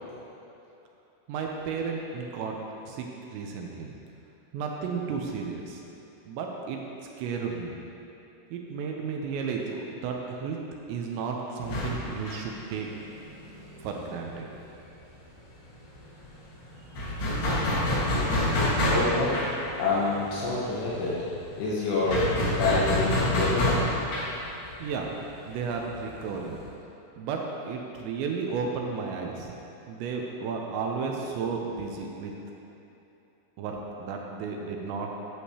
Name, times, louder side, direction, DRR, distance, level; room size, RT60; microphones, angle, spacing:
voice 1, 1.3-2.6 2.8-3.9 4.5-5.8 6.3-6.8 7.2-7.7 8.5-10.6 10.9-12.9 13.8-14.5 24.8-25.1 25.4-26.6 27.2-29.5 29.9-32.3 33.6-35.1, right 5 dB, 80° right, 1 dB, 2.6 m, -33 dB
sound 1, 11.6-15.0 15.3-15.4 15.7-26.7, left 1 dB, 55° left, 2.8 m, -29 dB
voice 2, 18.9-19.5 19.8-21.3 21.6-22.3 22.6-23.8, left 3 dB, 80° left, -7 dB, 3.5 m, -27 dB
11.0 x 6.4 x 2.9 m, 2.9 s
omnidirectional pair, 5.6 m